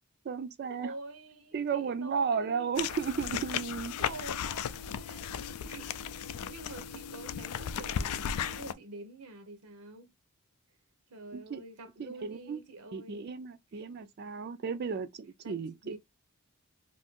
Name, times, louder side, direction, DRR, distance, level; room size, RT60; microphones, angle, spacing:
voice 1, 0.2-0.9 1.5-3.9 11.3-11.6 12.0-12.6 12.9-15.7, right 6 dB, 45° right, 0.3 m, -34 dB
voice 2, 0.8-2.7 4.0-10.1 11.1-13.4 13.7-13.9 15.4-15.6 15.8-16.0, right 2 dB, 85° right, 0.8 m, -47 dB
sound 1, 2.8-8.7, left 8 dB, 85° left, 0.3 m, -36 dB
2.7 x 2.5 x 3.5 m
head